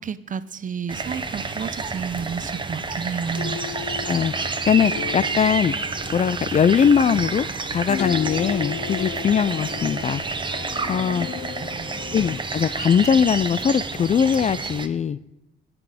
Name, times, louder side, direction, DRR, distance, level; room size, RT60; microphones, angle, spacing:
voice 1, 0.0-3.6 11.4-12.2, right 6 dB, 40° right, 15 dB, 0.7 m, -31 dB
sound 1, 0.9-14.9, right 4 dB, 25° right, 1.2 m, -29 dB
sound 2, 3.3-12.4, left 9 dB, 85° left, 0.6 m, -35 dB
voice 2, 4.7-5.7 6.1-7.5 7.7-10.2 10.9-11.3 12.1-15.2, left 7 dB, 35° left, 18 dB, 0.4 m, -20 dB
17.5 x 6.1 x 5.0 m, 0.91 s
cardioid pair, 90°, 20 cm